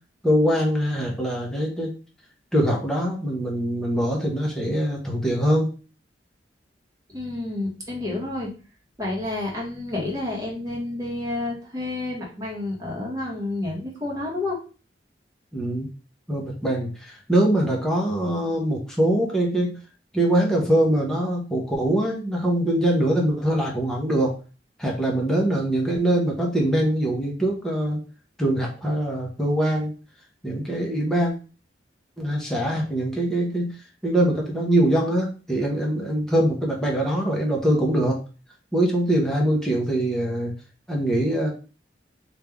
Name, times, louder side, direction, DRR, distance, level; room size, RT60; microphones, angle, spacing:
voice 1, 0.2-1.9 2.5-5.7 15.5-15.9 16.3-19.8 20.1-24.3 24.8-28.0 28.4-29.9 30.4-31.3 32.2-33.7 34.0-38.2 38.7-40.5 40.9-41.5, right 1 dB, 5° left, -2 dB, 1.0 m, -23 dB
voice 2, 7.1-8.5 9.0-14.6, left 2 dB, 20° right, -3 dB, 1.4 m, -29 dB
3.3 x 2.7 x 3.5 m, 0.35 s
head